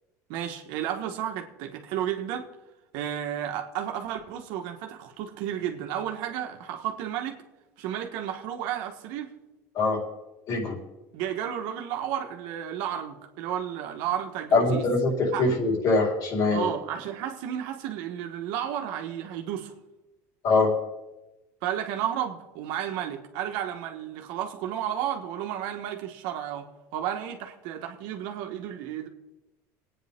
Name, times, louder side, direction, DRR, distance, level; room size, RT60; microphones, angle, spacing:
voice 1, 0.3-2.5 2.9-7.4 7.8-9.3 11.1-14.9 15.3-15.4 16.5-19.7 21.6-29.1, right 10 dB, 75° right, 1.7 m, -32 dB
voice 2, 10.5-10.8 14.5-16.7 20.4-20.7, left 3 dB, 55° left, 4.2 m, -23 dB
23.0 x 9.4 x 3.7 m
cardioid pair, 130°, 7 cm